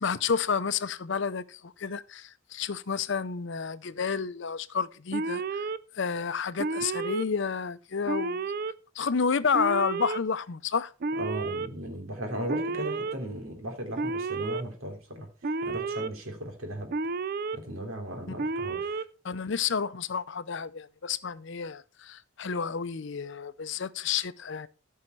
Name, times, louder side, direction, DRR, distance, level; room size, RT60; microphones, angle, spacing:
voice 1, 0.0-5.6 5.9-8.5 9.0-10.9 19.2-24.7, left 6 dB, 60° left, 0.6 m, -30 dB
Alarm, 5.1-5.8 6.6-7.2 8.1-8.7 9.5-10.2 11.0-11.7 12.5-13.1 14.0-14.6 15.4-16.1 16.9-17.6 18.4-19.0, right 3 dB, 45° right, 0.5 m, -31 dB
voice 2, 11.1-16.9 17.5-19.0, equal, 90° right, 3.1 m, -37 dB
14.0 x 5.6 x 4.6 m
head